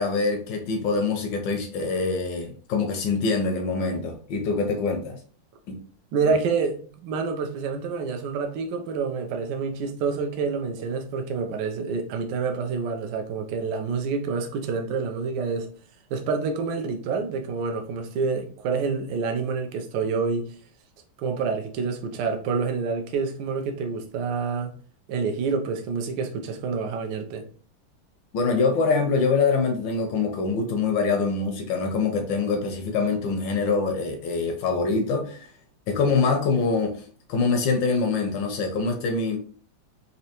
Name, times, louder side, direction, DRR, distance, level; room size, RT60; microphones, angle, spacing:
voice 1, 0.0-5.2 5.7-5.8 28.3-35.5 35.9-39.4, left 4 dB, 75° left, 1.1 m, -24 dB
voice 2, 6.1-15.7 16.1-20.5 21.2-24.7 25.1-27.4, right 5 dB, 70° right, 1.2 m, -27 dB
4.3 x 2.6 x 2.8 m
omnidirectional pair, 2.4 m